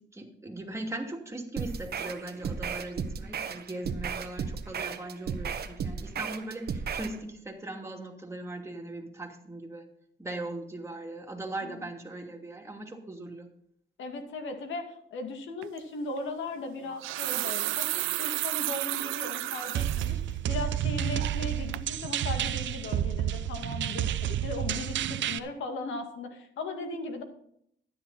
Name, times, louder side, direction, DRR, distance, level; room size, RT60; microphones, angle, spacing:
voice 1, 0.1-9.9 10.2-13.5, right 2 dB, 15° right, 1 dB, 2.7 m, -39 dB
sound 1, 1.6-7.2, right 6 dB, 50° right, 1.2 m, -34 dB
voice 2, 14.0-27.2, left 3 dB, 75° left, 5 dB, 2.3 m, -37 dB
sound 2, 15.6-15.8 16.8-20.1 20.6-20.7 21.2-21.5 21.7-21.9, right 18 dB, 90° right, 0.4 m, -32 dB
sound 3, 19.7-25.4, right 11 dB, 70° right, 0.8 m, -30 dB
12.5 x 10.0 x 4.2 m, 0.69 s
cardioid pair, 90°, 20 cm